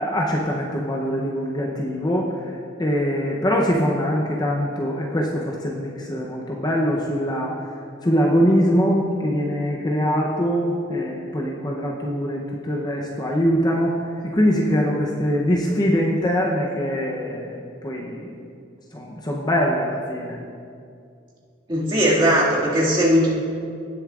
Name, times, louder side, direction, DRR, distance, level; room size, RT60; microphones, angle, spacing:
voice 1, 0.0-7.5 8.0-17.6 17.8-18.3 18.9-20.4, equal, 20° left, -2 dB, 0.6 m, -23 dB
voice 2, 21.7-23.3, equal, 25° right, -6 dB, 2.0 m, -18 dB
18.0 x 6.9 x 2.4 m, 2.4 s
head